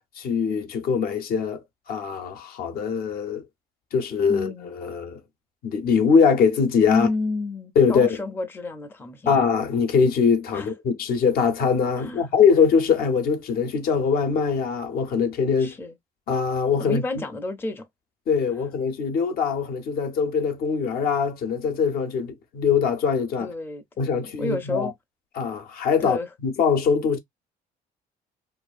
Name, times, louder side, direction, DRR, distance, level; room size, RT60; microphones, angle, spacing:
voice 1, 0.2-3.5 3.9-5.2 5.6-7.1 7.8-8.1 9.3-15.7 16.3-17.0 18.3-23.5 24.0-24.9 25.4-26.2 26.4-27.2, left 6 dB, 60° left, 0.6 m, -22 dB
voice 2, 4.3-4.7 6.9-9.4 10.5-10.7 12.0-12.3 15.6-16.0 16.8-17.9 23.4-24.9 26.0-26.3, left 2 dB, 15° left, 0.4 m, -30 dB
2.5 x 2.3 x 2.3 m
cardioid pair, 110°, 17 cm